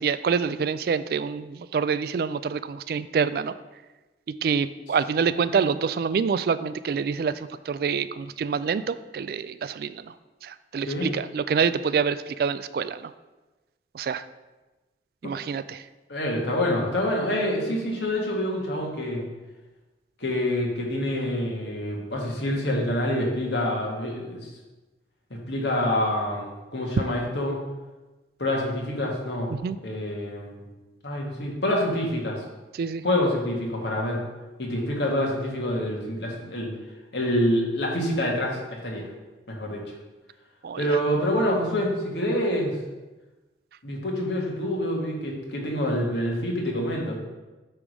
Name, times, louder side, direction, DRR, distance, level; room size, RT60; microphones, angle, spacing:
voice 1, 0.0-3.5 4.4-10.0 10.4-13.1 13.9-14.2 15.2-15.8 29.6-29.8 32.8-33.0 40.6-40.8, right 6 dB, 55° right, 15 dB, 0.3 m, -26 dB
voice 2, 16.1-19.2 20.2-24.5 25.3-27.6 28.4-29.5 29.8-30.7 31.0-32.4 33.0-34.2 34.6-36.7 37.1-39.1 39.5-39.8 40.8-42.8 43.8-47.2, left 1 dB, 75° left, -1 dB, 1.8 m, -26 dB
8.6 x 3.5 x 6.1 m, 1.1 s
head